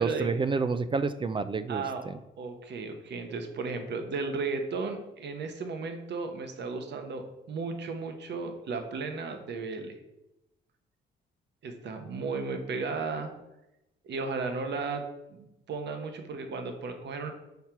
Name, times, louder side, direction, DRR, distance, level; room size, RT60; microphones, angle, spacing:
voice 1, 0.0-2.1, right 4 dB, 25° right, 12 dB, 0.3 m, -29 dB
voice 2, 1.7-2.0 2.4-9.9 11.6-13.3 14.0-15.0 15.3-17.3, right 4 dB, 60° right, 6 dB, 1.0 m, -34 dB
5.7 x 4.4 x 4.5 m, 0.92 s
cardioid pair, 90°, 20 cm